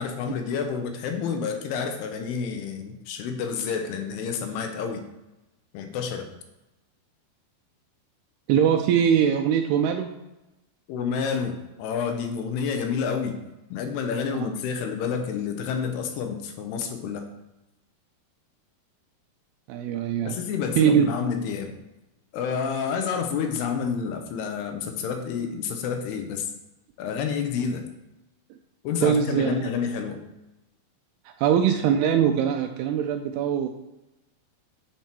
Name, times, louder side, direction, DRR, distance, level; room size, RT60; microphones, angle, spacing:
voice 1, 0.0-5.0 5.7-6.3 10.9-13.4 13.7-17.3 20.2-21.7 22.3-26.5 27.0-27.8 28.8-30.2, left 6 dB, 85° left, 5 dB, 2.7 m, -29 dB
voice 2, 8.5-10.1 19.7-20.4 20.8-21.1 29.0-29.5 31.3-33.7, right 8 dB, 85° right, 5 dB, 2.4 m, -22 dB
9.3 x 4.4 x 4.4 m, 0.99 s
omnidirectional pair, 4.8 m